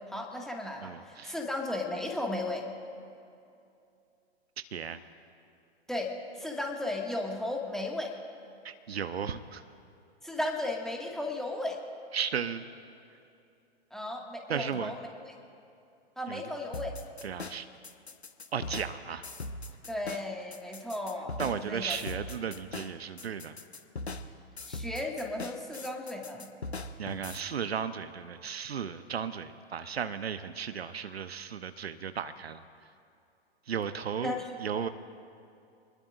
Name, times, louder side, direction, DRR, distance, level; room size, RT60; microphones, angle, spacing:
voice 1, 0.1-2.7 5.9-8.1 10.2-11.8 13.9-15.0 16.2-17.0 19.9-22.0 24.7-26.5 34.2-34.5, left 1 dB, ahead, 0 dB, 1.9 m, -35 dB
voice 2, 0.8-1.4 4.7-5.0 8.6-9.6 12.1-12.6 14.5-14.9 16.3-16.5 17.2-17.7 18.5-19.3 21.4-23.6 27.0-32.6 33.7-34.9, right 7 dB, 70° right, 11 dB, 0.8 m, -35 dB
sound 1, 16.7-27.4, left 2 dB, 85° left, 1.0 m, -41 dB
27.0 x 20.5 x 2.6 m, 2.6 s
figure-of-eight pair, 105°, 32 cm